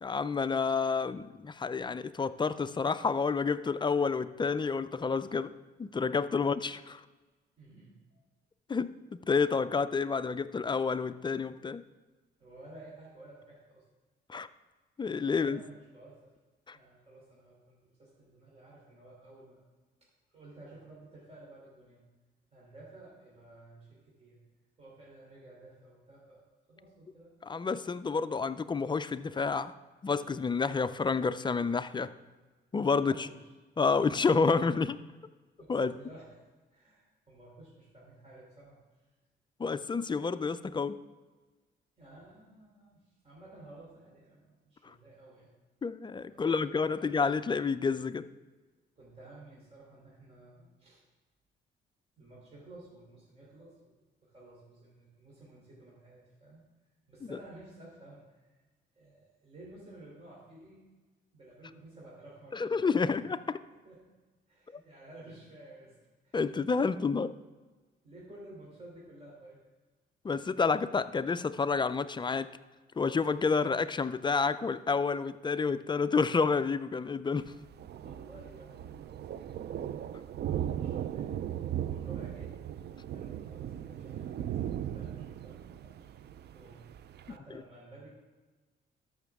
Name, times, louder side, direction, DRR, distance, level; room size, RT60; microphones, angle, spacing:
voice 1, 0.0-5.5 5.8-7.0 8.7-11.8 14.3-14.5 15.0-15.6 16.7-16.8 27.5-29.8 30.0-32.1 32.7-33.3 33.8-35.0 35.7-35.9 39.6-41.0 44.8-44.9 45.8-48.3 62.5-63.4 66.3-67.3 70.2-72.5 73.0-77.5, left 5 dB, 25° left, 13 dB, 0.4 m, -29 dB
voice 2, 7.6-8.2 12.4-13.8 15.3-16.3 16.7-19.6 20.3-22.0 22.5-24.4 24.8-26.4 26.7-27.3 32.9-33.5 35.6-36.4 36.7-38.8 42.0-45.5 46.3-47.2 49.0-51.0 52.2-54.0 54.2-56.6 57.1-58.6 58.9-60.9 61.3-63.2 63.8-64.1 64.5-66.0 66.2-66.4 66.7-67.2 68.0-69.6 77.9-79.9 80.2-81.5 81.8-82.6 82.9-86.1 86.5-86.8 87.2-88.1, right 2 dB, 30° right, -6 dB, 3.2 m, -53 dB
Thunder, 77.4-87.4, right 10 dB, 55° right, 0.4 m, -38 dB
13.5 x 6.0 x 3.6 m, 1.3 s
cardioid pair, 90°, 20 cm